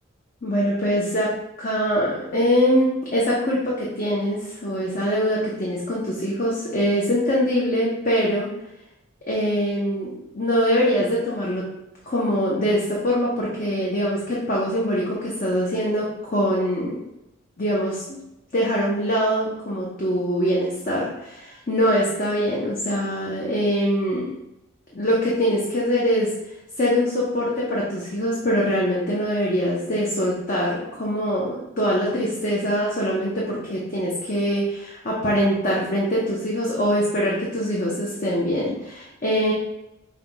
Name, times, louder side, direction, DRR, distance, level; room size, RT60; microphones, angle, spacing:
voice 1, 0.4-1.3 1.6-8.5 9.3-11.6 12.1-16.9 17.6-18.0 18.5-24.3 24.9-26.3 26.8-39.5, equal, 40° left, -5 dB, 0.8 m, -23 dB
5.5 x 2.3 x 4.0 m, 0.90 s
head